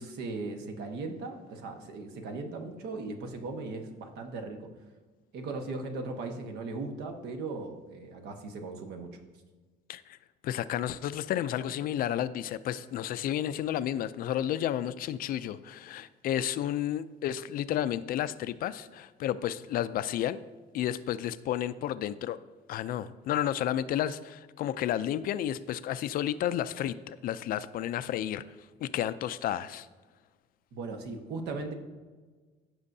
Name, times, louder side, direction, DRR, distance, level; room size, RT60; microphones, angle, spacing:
voice 1, 0.0-4.7 5.3-9.2 30.7-31.7, right 3 dB, 70° right, 4 dB, 1.3 m, -38 dB
voice 2, 10.4-20.4 20.7-22.4 22.7-28.4 28.8-29.9, left 11 dB, 55° left, 14 dB, 0.4 m, -31 dB
15.0 x 6.2 x 2.7 m, 1.4 s
cardioid pair, 135°, 17 cm